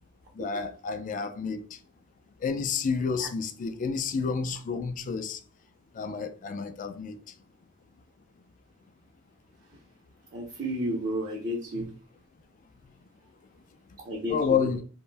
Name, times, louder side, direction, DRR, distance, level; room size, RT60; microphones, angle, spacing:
voice 1, 0.4-1.8 2.4-5.4 5.9-7.2 11.7-11.9 14.3-14.8, left 5 dB, 40° left, 0.3 m, -30 dB
voice 2, 10.3-11.9 14.0-14.6, equal, 40° right, 0.6 m, -31 dB
2.5 x 2.1 x 3.2 m
head